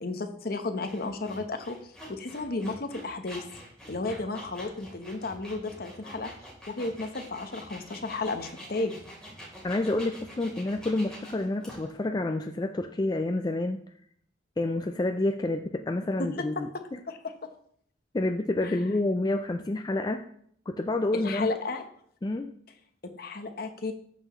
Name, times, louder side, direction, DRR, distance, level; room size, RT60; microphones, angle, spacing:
voice 1, 0.0-3.4 3.9-6.3 6.7-9.0 16.2-16.3 16.6-17.5 18.6-18.8 21.1-21.8 23.1-23.9, left 3 dB, 55° left, 7 dB, 0.9 m, -33 dB
sound 1, 0.8-12.0, equal, 5° left, 3.4 m, -46 dB
voice 2, 9.6-13.8 14.6-16.7 18.1-20.2 20.7-21.5 22.2-22.5, left 2 dB, 20° left, 6 dB, 0.4 m, -28 dB
13.0 x 5.8 x 3.1 m, 0.63 s
head